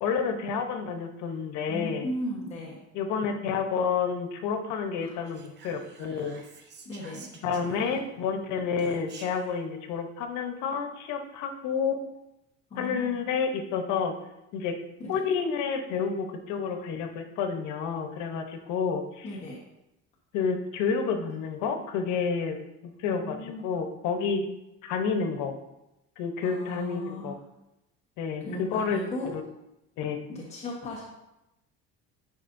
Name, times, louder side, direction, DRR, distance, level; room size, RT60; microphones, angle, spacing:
voice 1, 0.0-2.1 2.9-6.4 7.4-12.0 12.8-14.1 14.5-14.7 15.1-19.3 20.3-22.6 22.8-24.5 24.8-25.6 26.2-27.3 28.2-29.0 29.3-29.4 30.0-30.2, left 6 dB, 85° left, 6 dB, 0.9 m, -29 dB
voice 2, 1.7-2.8 5.0-5.2 6.8-7.3 12.7-13.1 15.0-15.2 19.2-19.6 23.1-23.7 26.4-27.4 28.4-29.3 30.3-31.0, left 1 dB, 25° left, -5 dB, 1.1 m, -37 dB
Whispering, 5.2-8.2 8.8-9.5, right 4 dB, 35° right, 0.9 m, -50 dB
10.5 x 4.9 x 2.6 m, 0.92 s
cardioid pair, 170°, 29 cm